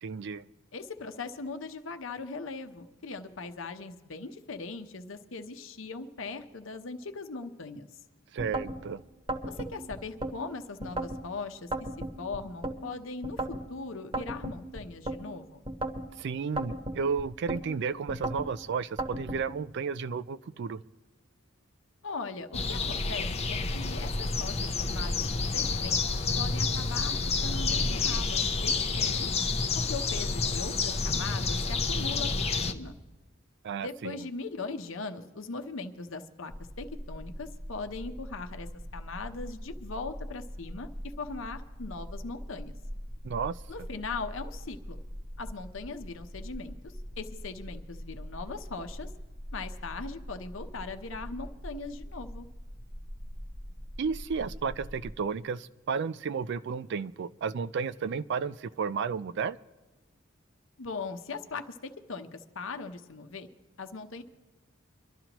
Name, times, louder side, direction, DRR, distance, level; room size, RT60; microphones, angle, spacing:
voice 1, 0.0-0.5 8.3-9.0 16.2-20.8 33.6-34.3 43.2-43.6 54.0-59.6, right 5 dB, 60° right, 0.4 m, -33 dB
voice 2, 0.7-7.9 9.4-11.7 12.2-15.6 22.0-26.0 26.4-29.3 29.7-32.9 33.8-38.7 38.9-40.9 41.2-42.7 43.7-45.0 45.4-49.1 49.5-52.5 60.8-63.5 63.8-64.2, left 4 dB, 70° left, 0.9 m, -40 dB
sound 1, 8.4-8.8 9.3-10.3 10.8-11.2 11.7-12.8 13.2-13.6 14.1-15.2 15.7-16.1 16.6-17.6 18.1-18.5 19.0-19.4, right 2 dB, 25° right, 1.2 m, -34 dB
sound 2, 22.5-32.7, left 4 dB, 30° left, 0.6 m, -29 dB
sound 3, 36.5-55.2, equal, 10° right, 0.7 m, -42 dB
24.5 x 12.5 x 3.0 m
head